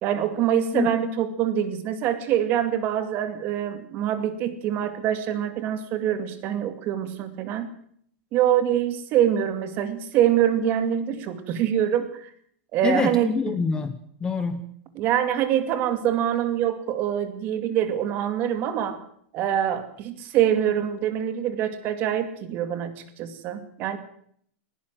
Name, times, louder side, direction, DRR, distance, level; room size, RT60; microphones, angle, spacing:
voice 1, 0.0-7.7 8.3-12.3 12.7-13.6 15.0-19.0 19.3-24.0, right 10 dB, 30° right, 11 dB, 2.4 m, -25 dB
voice 2, 12.8-14.7, left 5 dB, 10° left, 10 dB, 1.1 m, -26 dB
19.5 x 17.0 x 7.6 m, 0.65 s
supercardioid pair, 170°, 6 cm